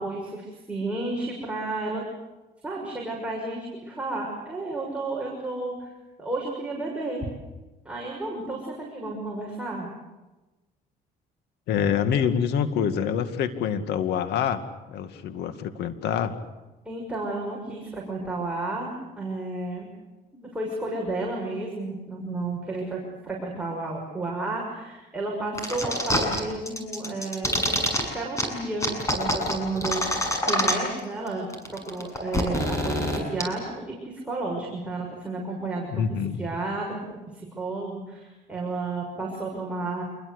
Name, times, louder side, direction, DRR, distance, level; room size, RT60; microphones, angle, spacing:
voice 1, 0.0-2.0 2.6-5.9 6.2-7.3 7.8-9.9 16.8-19.9 20.3-27.7 28.1-36.0 36.4-37.0 37.3-40.0, right 2 dB, 5° right, -3 dB, 6.7 m, -32 dB
voice 2, 11.7-16.4 35.9-36.4, left 8 dB, 80° left, 10 dB, 2.2 m, -26 dB
sound 1, 25.6-26.4 26.7-28.0 28.4-28.5 28.8-31.0 31.3-31.4 31.5-33.4, left 1 dB, 20° left, 7.1 m, -25 dB
27.5 x 22.0 x 8.2 m, 1.1 s
cardioid pair, 110°, 17 cm